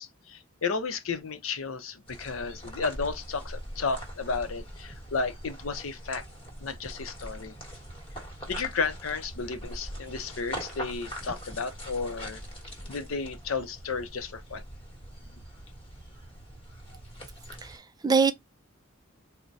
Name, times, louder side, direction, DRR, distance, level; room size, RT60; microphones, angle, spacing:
voice 1, 0.0-6.2 6.6-7.6 8.5-12.4 12.9-14.6, left 4 dB, 75° left, 0.6 m, -33 dB
sound 1, 2.1-17.8, equal, 25° left, 1.2 m, -42 dB
voice 2, 17.6-18.3, right 5 dB, 20° right, 0.3 m, -24 dB
4.0 x 2.1 x 4.5 m
head